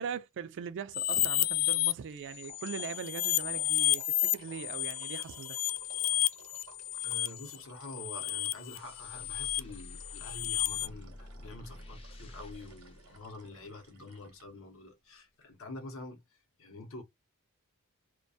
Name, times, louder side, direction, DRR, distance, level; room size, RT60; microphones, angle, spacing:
voice 1, 0.0-5.6, right 7 dB, 55° right, 0.3 m, -40 dB
sound 1, 0.9-1.9 2.4-10.9, left 15 dB, 90° left, 0.3 m, -31 dB
sound 2, 1.1-1.3 1.6-14.5, right 4 dB, 75° right, 0.8 m, -57 dB
voice 2, 7.0-17.0, left 2 dB, 60° left, 0.8 m, -47 dB
sound 3, 8.5-13.9, left 1 dB, 25° left, 0.5 m, -50 dB
2.3 x 2.2 x 2.6 m
head